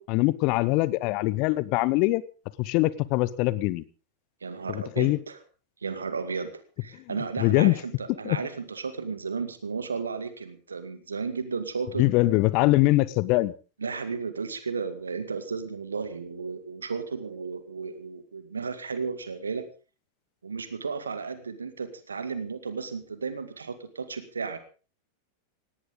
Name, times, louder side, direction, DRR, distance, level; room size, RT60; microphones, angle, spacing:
voice 1, 0.0-2.2 2.6-3.8 4.7-5.2 7.4-7.7 8.2-8.4 12.0-13.5, left 20 dB, 45° left, 19 dB, 0.9 m, -23 dB
voice 2, 4.4-5.4 5.8-6.5 6.8-12.0 13.8-19.6 20.4-24.6, right 5 dB, 75° right, 11 dB, 2.1 m, -34 dB
18.0 x 17.5 x 3.8 m, 0.35 s
figure-of-eight pair, 90°, 0 cm